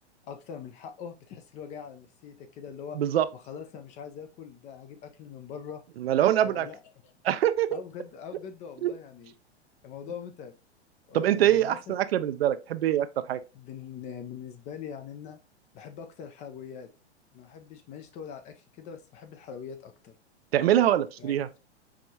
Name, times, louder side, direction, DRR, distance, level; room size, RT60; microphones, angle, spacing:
voice 1, 0.3-3.0 3.3-5.8 6.4-7.1 7.7-9.3 9.8-10.5 11.1-12.0 13.5-15.4 15.7-16.9 17.3-20.1 21.2-21.4, left 7 dB, 20° left, 0.4 m, -42 dB
voice 2, 2.9-3.3 6.0-6.7 7.2-7.8 8.8-8.9 11.1-13.4 20.5-21.5, right 11 dB, 65° right, 0.5 m, -24 dB
4.8 x 3.4 x 2.7 m
figure-of-eight pair, 105°, 34 cm